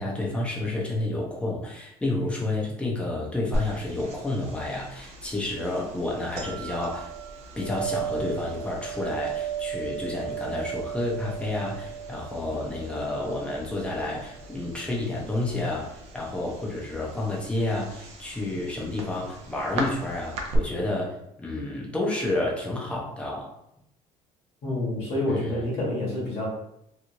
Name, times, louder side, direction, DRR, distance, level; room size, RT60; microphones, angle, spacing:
voice 1, 0.0-7.1 7.6-15.9 16.1-23.5 25.3-25.7, left 2 dB, 10° left, -3 dB, 0.6 m, -30 dB
sound 1, 3.5-20.6, right 5 dB, 50° right, 0.6 m, -36 dB
voice 2, 24.6-26.5, left 1 dB, 50° left, -5 dB, 1.2 m, -28 dB
3.0 x 2.5 x 2.6 m, 0.78 s
cardioid pair, 165°, 14 cm